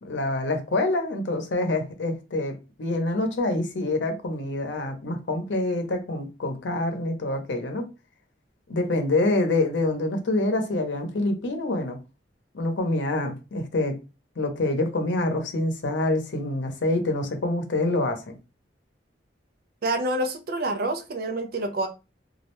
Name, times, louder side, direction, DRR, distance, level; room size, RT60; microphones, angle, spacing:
voice 1, 0.0-7.8 8.7-12.0 12.5-14.0 14.4-18.4, left 2 dB, 90° left, 0.7 m, -26 dB
voice 2, 19.8-21.9, right 1 dB, 55° right, 0.5 m, -27 dB
2.3 x 2.1 x 2.9 m
head